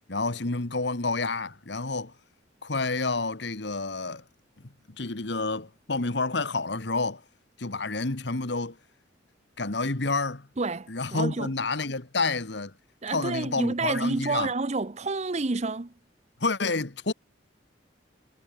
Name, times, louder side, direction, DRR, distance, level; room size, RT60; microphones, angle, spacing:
voice 1, 0.1-2.1 2.6-4.2 5.0-7.2 7.6-8.8 9.6-10.5 10.9-12.7 13.1-14.5 16.4-17.1, left 3 dB, 60° left, 1.5 m, -29 dB
voice 2, 10.6-11.5 13.0-15.9, right 3 dB, 35° right, 0.7 m, -29 dB
head